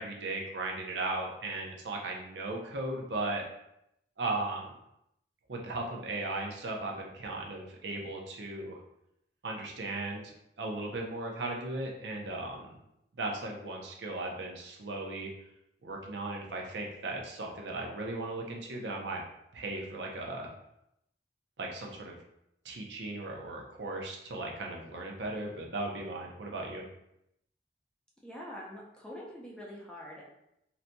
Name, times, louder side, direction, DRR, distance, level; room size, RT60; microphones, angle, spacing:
voice 1, 0.0-3.4 4.2-4.7 5.5-8.8 9.4-10.3 10.6-12.7 13.2-15.3 15.8-19.2 19.5-20.5 21.6-22.2 22.6-26.8, right 2 dB, 80° right, 0 dB, 0.6 m, -37 dB
voice 2, 28.2-30.2, equal, 5° left, -5 dB, 0.6 m, -44 dB
4.0 x 2.7 x 2.2 m, 0.80 s
head